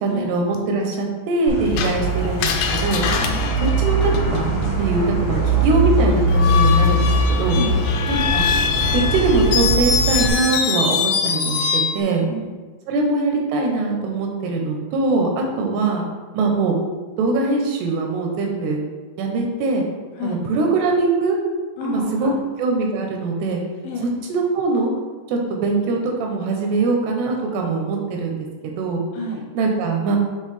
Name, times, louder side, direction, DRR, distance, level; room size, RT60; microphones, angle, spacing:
voice 1, 0.0-3.0 3.8-4.5 4.8-7.6 8.1-8.4 9.1-12.3 12.9-16.0 16.3-16.7 17.2-18.8 19.2-19.9 20.2-21.4 21.8-22.3 22.6-23.6 24.3-24.9 25.3-28.5 28.8-29.0 29.5-30.2, right 3 dB, 80° right, 1 dB, 2.8 m, -22 dB
sound 1, 1.5-10.3, right 1 dB, 50° left, 2.3 m, -21 dB
Screech, 1.8-4.6 6.3-12.0, left 6 dB, 90° left, 2.8 m, -23 dB
voice 2, 7.5-7.9 12.3-12.5 20.2-20.4 21.8-22.4 23.8-24.2 29.1-29.5, left 2 dB, 75° left, -2 dB, 2.8 m, -29 dB
7.5 x 3.9 x 3.3 m, 1.3 s
omnidirectional pair, 4.8 m